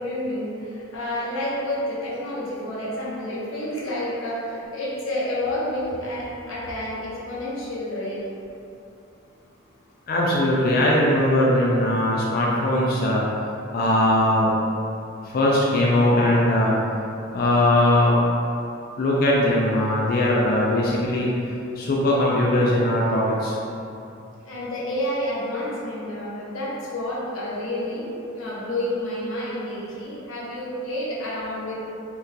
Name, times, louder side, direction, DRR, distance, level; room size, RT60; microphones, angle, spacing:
voice 1, 0.0-8.2 24.5-31.9, left 1 dB, 85° left, -7 dB, 0.8 m, -29 dB
voice 2, 10.1-13.2 13.7-14.5 15.3-16.7 17.3-18.2 19.0-21.3 21.8-23.6, left 1 dB, 50° left, -4 dB, 0.4 m, -20 dB
3.6 x 2.3 x 2.7 m, 2.7 s
head